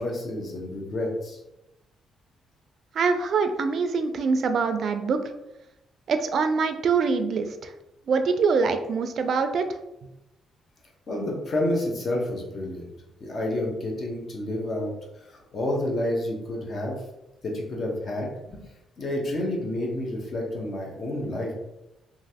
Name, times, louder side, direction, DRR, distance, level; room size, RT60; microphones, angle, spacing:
voice 1, 0.0-1.4 11.1-12.9 13.2-14.9 15.3-17.0 17.4-18.7 19.0-21.5, left 1 dB, 50° left, -2 dB, 0.9 m, -29 dB
voice 2, 2.9-5.2 6.1-7.7 8.1-9.7, right 5 dB, 60° right, 8 dB, 0.3 m, -24 dB
3.0 x 2.4 x 2.8 m, 0.93 s
cardioid pair, 90°, 0 cm